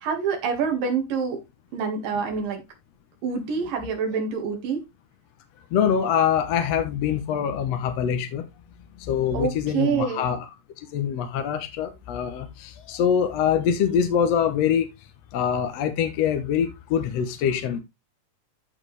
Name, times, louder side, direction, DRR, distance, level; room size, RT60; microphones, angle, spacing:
voice 1, 0.0-1.4 1.7-2.6 3.2-4.8 9.3-10.3, right 5 dB, 80° right, 3.7 m, -26 dB
voice 2, 5.7-8.4 9.0-10.5 10.9-14.9 15.3-17.8, left 8 dB, 65° left, 1.8 m, -24 dB
13.5 x 4.8 x 3.3 m
omnidirectional pair, 3.9 m